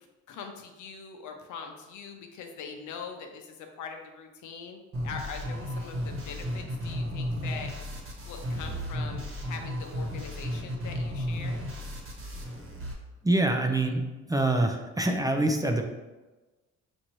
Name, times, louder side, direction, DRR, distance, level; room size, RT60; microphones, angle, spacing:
voice 1, 0.3-7.9 8.2-11.6, left 5 dB, 75° left, 4 dB, 0.7 m, -42 dB
sound 1, 4.9-12.9, equal, 45° right, 1.2 m, -34 dB
voice 2, 13.2-15.8, right 2 dB, 10° right, 3 dB, 0.4 m, -25 dB
6.0 x 2.6 x 3.0 m, 1.2 s
cardioid pair, 90°, 30 cm